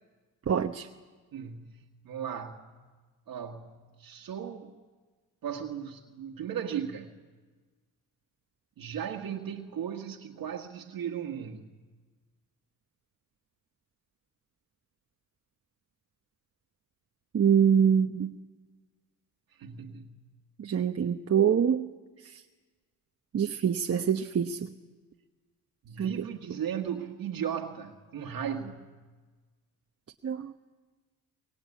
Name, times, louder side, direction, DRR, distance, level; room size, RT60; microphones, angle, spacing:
voice 1, 0.5-0.9 17.3-18.4 20.6-21.9 22.2-22.3 23.3-24.7 26.0-26.1 30.2-30.7, right 7 dB, 45° right, 1.0 m, -25 dB
voice 2, 1.3-2.8 3.3-4.7 5.4-7.2 8.8-11.7 19.6-20.3 25.8-29.0, right 8 dB, 75° right, 1.8 m, -37 dB
23.5 x 23.0 x 8.5 m
cardioid pair, 85°, 35 cm